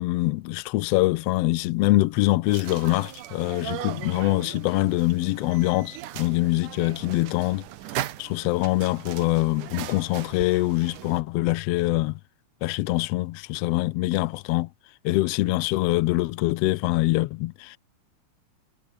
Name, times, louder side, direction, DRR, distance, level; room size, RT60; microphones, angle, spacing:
voice 1, 0.0-7.7 8.2-12.2 12.6-14.7 15.0-17.8, left 18 dB, 90° left, 1.4 m, -24 dB
sound 1, 2.5-11.2, right 13 dB, 90° right, 2.7 m, -38 dB
omnidirectional pair, 3.5 m